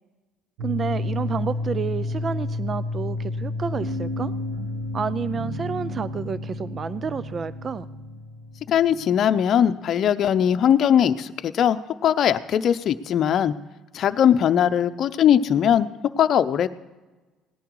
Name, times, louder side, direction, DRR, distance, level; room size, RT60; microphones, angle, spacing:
voice 1, 0.6-4.3 4.9-7.9, right 6 dB, 40° right, 17 dB, 0.4 m, -30 dB
sound 1, 0.6-9.4, left 2 dB, 85° right, 1.5 m, -31 dB
voice 2, 8.7-13.5 13.9-15.9 16.2-16.7, left 9 dB, 55° left, 10 dB, 0.7 m, -20 dB
17.5 x 10.5 x 4.7 m, 1.2 s
supercardioid pair, 85°, 0 cm